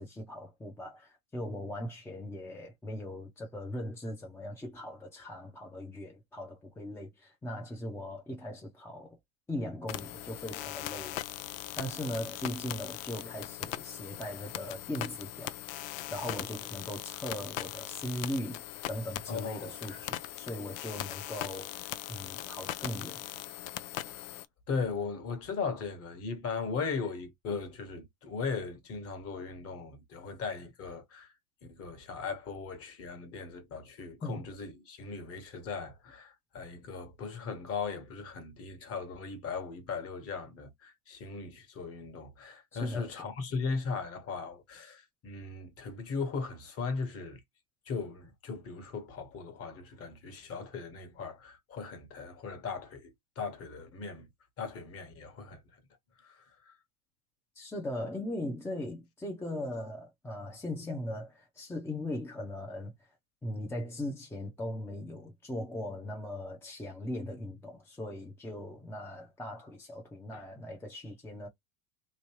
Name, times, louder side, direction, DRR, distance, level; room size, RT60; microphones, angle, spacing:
voice 1, 0.0-9.2 9.5-11.2 11.8-15.5 16.1-18.6 18.9-23.2 34.2-34.5 42.7-43.2 57.6-63.2 63.4-71.5, left 1 dB, 5° left, 0.6 m, -39 dB
sound 1, 9.9-24.5, left 14 dB, 65° left, 0.5 m, -40 dB
voice 2, 19.3-20.0 24.1-24.2 24.7-31.3 31.7-47.4 47.8-54.3 54.6-55.6 56.2-56.8 70.3-70.4, left 5 dB, 30° left, 1.2 m, -38 dB
3.1 x 2.5 x 2.9 m
supercardioid pair, 115°, 43 cm